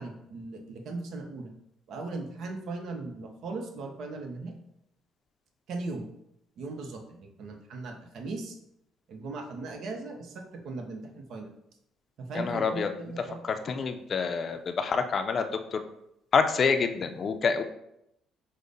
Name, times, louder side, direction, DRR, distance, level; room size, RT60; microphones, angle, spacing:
voice 1, 0.0-1.5 1.9-4.6 5.7-6.0 6.6-8.6 9.1-11.5 12.2-13.4, right 3 dB, 65° right, 4 dB, 0.7 m, -38 dB
voice 2, 12.3-12.9 13.4-15.8 16.3-17.6, left 5 dB, 50° left, 7 dB, 0.4 m, -27 dB
4.9 x 2.1 x 3.9 m, 0.79 s
supercardioid pair, 70°, 0 cm